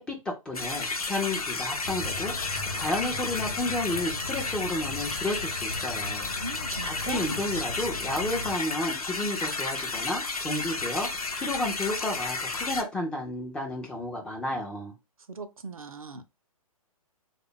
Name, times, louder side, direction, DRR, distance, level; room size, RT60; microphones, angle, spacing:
voice 1, 0.0-6.3 6.8-11.1 11.3-14.9, left 2 dB, 5° left, 0.3 m, -32 dB
sound 1, 0.5-12.8, left 3 dB, 75° left, 0.7 m, -32 dB
sound 2, 1.8-8.6, left 2 dB, 45° left, 0.7 m, -39 dB
voice 2, 6.4-7.5 15.3-16.3, right 3 dB, 70° right, 0.6 m, -40 dB
3.2 x 2.3 x 3.6 m
figure-of-eight pair, 125°, 19 cm